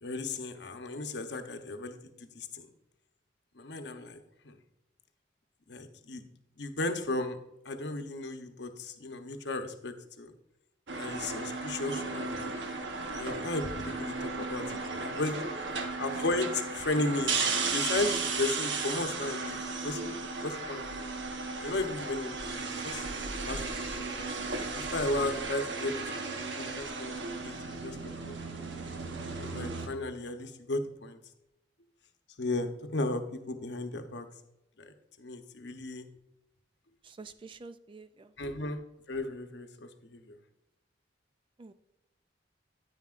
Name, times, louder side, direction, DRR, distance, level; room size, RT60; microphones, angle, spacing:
voice 1, 0.0-2.7 3.6-4.2 4.4-4.6 5.7-6.2 6.6-7.4 7.6-10.3 10.9-12.5 13.1-15.3 16.0-21.1 21.6-23.1 23.5-24.1 24.7-28.3 29.4-31.2 32.4-33.2 33.5-34.3 34.8-36.1 38.4-38.8 39.1-40.4, left 2 dB, 65° left, 7 dB, 0.9 m, -35 dB
sound 1, 10.9-29.9, right 4 dB, 70° right, 1.0 m, -35 dB
voice 2, 37.0-38.3 41.6-41.7, right 3 dB, 25° right, 12 dB, 0.3 m, -48 dB
9.6 x 9.5 x 2.5 m, 0.90 s
head